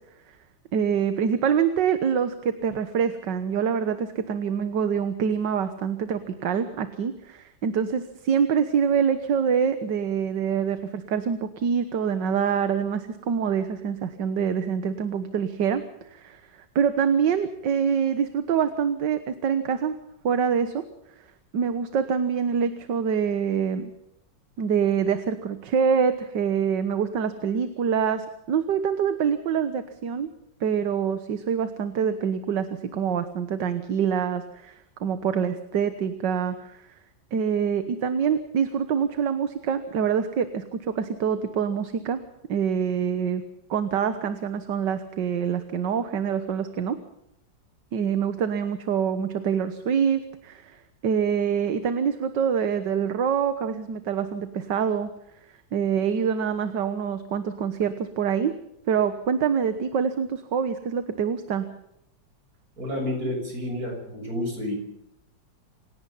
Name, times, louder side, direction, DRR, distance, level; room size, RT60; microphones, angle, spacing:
voice 1, 0.7-15.8 16.1-16.4 16.8-20.0 20.2-20.8 21.5-23.9 24.6-30.3 30.6-32.7 32.9-36.7 37.3-42.2 42.5-43.4 43.7-47.0 47.9-50.8 51.0-55.1 55.7-58.5 58.9-61.7, right 7 dB, 70° right, 10 dB, 1.9 m, -25 dB
voice 2, 62.8-64.8, left 1 dB, 50° right, 2 dB, 7.3 m, -30 dB
27.5 x 17.5 x 5.7 m, 0.78 s
omnidirectional pair, 2.0 m